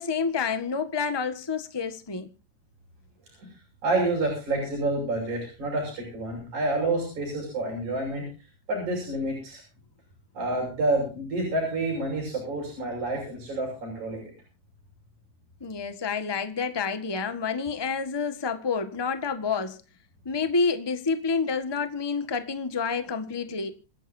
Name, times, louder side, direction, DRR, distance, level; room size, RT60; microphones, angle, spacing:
voice 1, 0.0-2.3 15.6-19.8 20.2-23.7, left 5 dB, 15° left, 0.8 m, -28 dB
voice 2, 3.8-8.3 8.7-9.6 10.3-14.2, right 2 dB, 80° right, 7.8 m, -28 dB
27.5 x 11.0 x 2.7 m
omnidirectional pair, 3.3 m